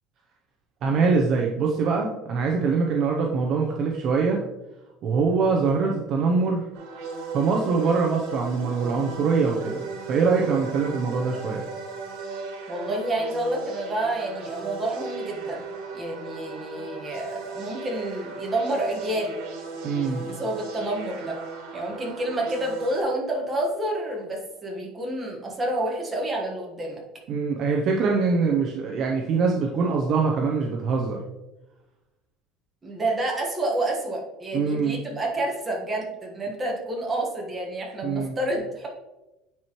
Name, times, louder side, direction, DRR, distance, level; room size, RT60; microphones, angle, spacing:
voice 1, 0.8-4.4 5.0-6.7 7.3-11.6 19.8-20.3 27.3-31.2 34.5-35.0 38.0-38.3, right 4 dB, 40° right, 0 dB, 0.7 m, -23 dB
sound 1, 6.7-23.0, right 4 dB, 85° right, 1.5 m, -37 dB
voice 2, 12.7-15.6 15.9-19.4 20.2-21.4 21.7-27.0 32.8-38.9, right 1 dB, 15° right, -2 dB, 1.4 m, -29 dB
9.3 x 4.4 x 3.0 m, 0.99 s
cardioid pair, 170°, 0 cm